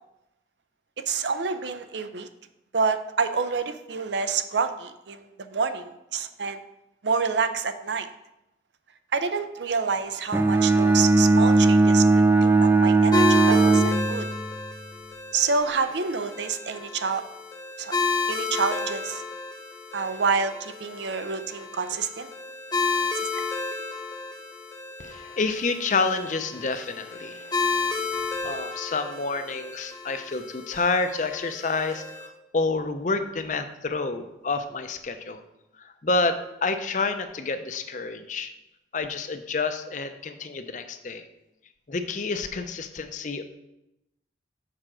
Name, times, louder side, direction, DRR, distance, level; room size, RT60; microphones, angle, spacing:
voice 1, 1.1-2.3 2.7-6.6 7.0-8.1 9.1-14.3 15.3-17.2 17.8-18.0 18.3-19.2 19.9-22.3 23.1-23.3, right 5 dB, 75° right, 10 dB, 0.6 m, -28 dB
Bowed string instrument, 10.3-14.6, right 3 dB, 10° right, 0.3 m, -19 dB
sound 1, 13.1-32.3, left 4 dB, 20° left, 1.0 m, -31 dB
voice 2, 25.0-35.4 35.8-38.5 38.9-41.3 41.9-43.4, left 3 dB, 45° left, 9 dB, 0.6 m, -29 dB
6.7 x 4.9 x 6.0 m, 0.90 s
head